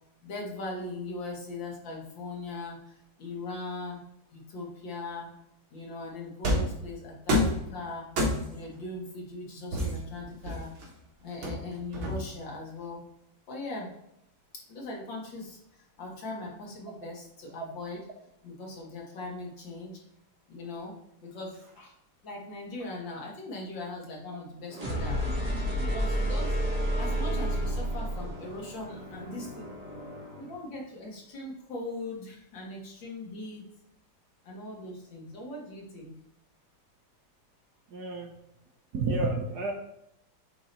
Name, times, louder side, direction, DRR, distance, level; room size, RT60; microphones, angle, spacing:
voice 1, 0.2-4.0 4.3-5.3 5.7-8.1 8.5-10.7 11.2-13.0 13.5-13.9 14.7-15.6 16.0-18.1 18.4-20.0 20.5-20.9 21.2-21.9 22.2-25.2 25.8-26.5 27.0-29.7 30.4-33.6 34.4-36.1, left 2 dB, 70° left, -2 dB, 2.3 m, -40 dB
sound 1, 6.4-6.8 7.3-7.6 8.2-8.6 9.7-10.8 11.4-12.4, left 1 dB, 80° right, 2.3 m, -28 dB
sound 2, 24.7-30.5, equal, 20° right, 1.4 m, -31 dB
voice 2, 25.5-25.9 37.9-38.3 38.9-39.7, right 3 dB, 60° right, 2 dB, 1.3 m, -31 dB
8.6 x 3.0 x 3.9 m, 0.81 s
omnidirectional pair, 2.2 m